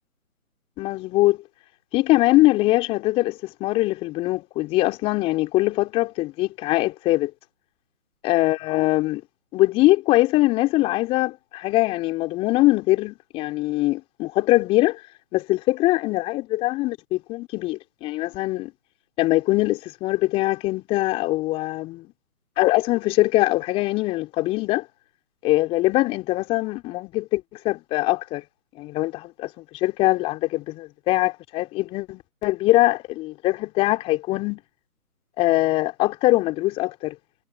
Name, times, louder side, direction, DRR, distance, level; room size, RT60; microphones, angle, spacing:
voice 1, 0.8-1.4 1.9-7.3 8.2-9.2 9.5-15.0 15.3-18.7 19.2-22.1 22.6-24.8 25.4-28.4 28.8-29.5 29.8-34.6 35.4-37.1, left 18 dB, 10° left, 4.1 m, -22 dB
figure-of-eight pair, 150°, 45 cm